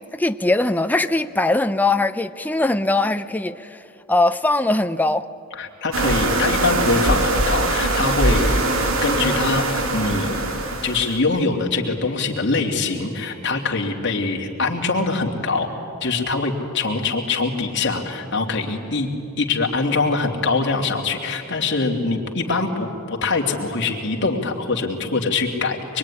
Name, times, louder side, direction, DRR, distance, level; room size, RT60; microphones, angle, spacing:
voice 1, 0.0-3.8 4.1-5.3, left 2 dB, 10° left, 9 dB, 0.6 m, -21 dB
voice 2, 5.5-10.4 10.8-15.7 16.0-19.1 19.4-26.0, left 3 dB, 55° left, 1 dB, 2.8 m, -23 dB
sound 1, 5.9-11.2, right 2 dB, 70° right, 2.0 m, -22 dB
25.0 x 23.0 x 10.0 m, 2.6 s
head